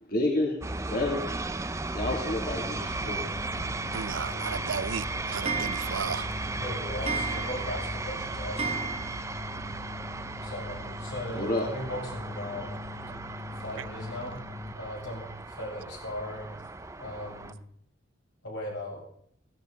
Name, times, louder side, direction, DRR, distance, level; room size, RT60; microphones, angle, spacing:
voice 1, 0.1-0.6 0.9-1.3 1.9-3.2 11.3-11.7, left 1 dB, 50° left, 2.8 m, -29 dB
sound 1, 0.6-17.5, right 3 dB, 15° right, 0.6 m, -36 dB
sound 2, 2.5-14.7, left 2 dB, 30° left, 1.6 m, -42 dB
voice 2, 3.9-6.3 13.8-13.9, right 6 dB, 85° right, 0.6 m, -34 dB
Clock, 4.5-9.6 9.9-10.0 10.2-10.3 10.5-10.6 11.8-11.9 12.4-12.5 13.1-13.2 13.7-13.8 14.4-14.5 15.0-15.1, right 4 dB, 30° right, 0.9 m, -36 dB
voice 3, 6.5-8.9 10.4-12.7 13.6-14.4 14.7-16.6 17.0-17.6 18.4-19.0, left 1 dB, 80° left, 7.5 m, -38 dB
17.0 x 16.0 x 4.0 m
head